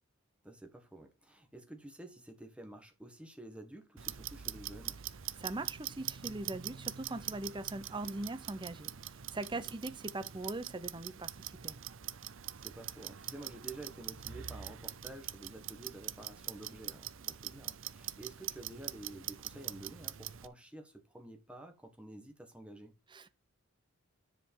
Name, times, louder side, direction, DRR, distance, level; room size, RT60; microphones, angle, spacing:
voice 1, 0.4-5.0 9.5-9.7 12.3-22.9, right 2 dB, 5° right, 1.6 m, -50 dB
Clock, 4.0-20.5, right 12 dB, 60° right, 0.6 m, -43 dB
voice 2, 5.4-11.8 23.1-23.3, right 2 dB, 20° right, 0.6 m, -41 dB
10.0 x 5.2 x 4.6 m
head